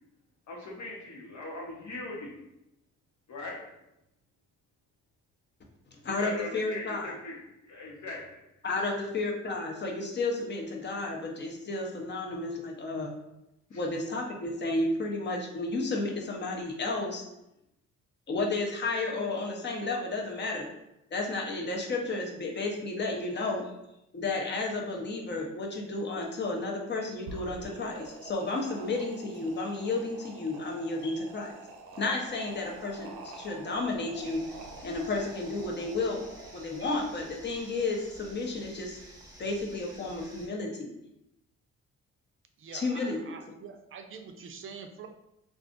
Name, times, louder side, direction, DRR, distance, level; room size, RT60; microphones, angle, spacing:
voice 1, 0.5-2.4 3.3-3.6 6.0-8.4 8.9-9.0 13.7-13.8, left 2 dB, 70° left, -3 dB, 1.1 m, -40 dB
voice 2, 5.9-7.1 8.6-13.1 13.7-17.2 18.3-20.7 21.1-23.7 24.1-31.5 32.0-34.4 34.8-36.2 36.5-39.0 39.4-40.9 42.7-43.2, left 3 dB, 35° left, 1 dB, 0.7 m, -32 dB
sound 1, 27.2-36.8, right 3 dB, 90° right, 0.6 m, -47 dB
sound 2, 34.1-40.5, right 1 dB, 10° right, 0.9 m, -51 dB
voice 3, 42.6-45.1, right 6 dB, 45° right, 6 dB, 0.5 m, -45 dB
2.5 x 2.4 x 3.7 m, 0.86 s
cardioid pair, 90°, 30 cm